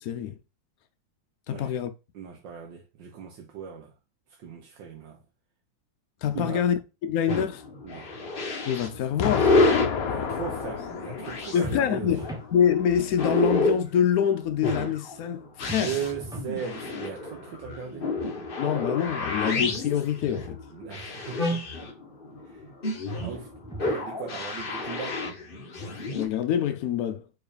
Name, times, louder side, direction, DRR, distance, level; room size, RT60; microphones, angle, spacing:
voice 1, 0.0-0.4 1.5-1.9 6.2-7.6 8.7-9.7 11.5-15.9 18.6-20.6 26.1-27.2, left 9 dB, 85° left, 0.7 m, -26 dB
voice 2, 2.1-3.9 4.4-5.2 6.3-6.7 7.8-8.1 10.1-12.1 15.7-18.1 20.7-21.4 21.8-21.9 22.4-22.6 23.1-23.5 23.8-25.2, right 7 dB, 65° right, 1.5 m, -37 dB
sound 1, 7.3-26.2, left 2 dB, 35° left, 1.0 m, -29 dB
Explosion, 9.2-12.2, left 7 dB, 60° left, 1.0 m, -31 dB
sound 2, 11.6-12.5 15.7-16.6 19.7-20.6 23.2-24.1, right 2 dB, 5° right, 0.3 m, -40 dB
4.8 x 4.2 x 4.9 m
omnidirectional pair, 2.2 m